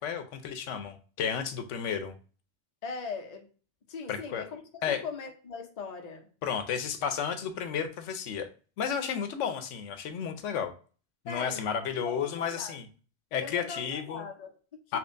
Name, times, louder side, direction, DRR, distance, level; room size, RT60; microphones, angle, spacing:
voice 1, 0.0-2.2 4.1-4.5 4.8-5.0 6.4-8.5 8.8-10.7 11.2-12.9 13.3-14.3 14.9-15.0, left 7 dB, 85° left, 1.0 m, -32 dB
voice 2, 2.8-3.5 3.9-4.6 4.9-6.3 11.3-11.6 11.9-12.7 13.4-15.0, left 5 dB, 40° left, 0.7 m, -40 dB
4.3 x 2.8 x 2.5 m
omnidirectional pair, 1.2 m